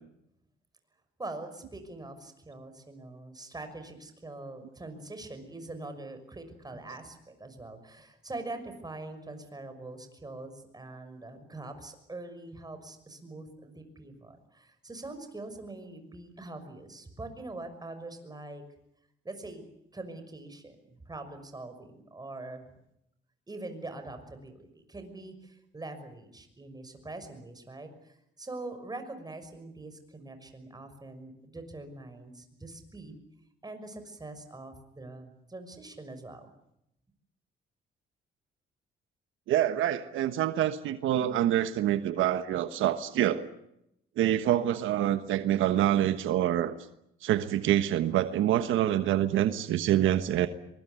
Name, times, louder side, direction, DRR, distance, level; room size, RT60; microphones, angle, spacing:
voice 1, 1.2-18.6 19.2-19.6 19.9-22.7 23.5-33.2 33.6-36.5, right 2 dB, 20° right, 8 dB, 6.0 m, -43 dB
voice 2, 39.5-43.5 44.2-46.7 47.2-50.5, right 12 dB, 85° right, 10 dB, 1.3 m, -26 dB
23.5 x 21.5 x 9.5 m, 0.80 s
cardioid pair, 90°, 20 cm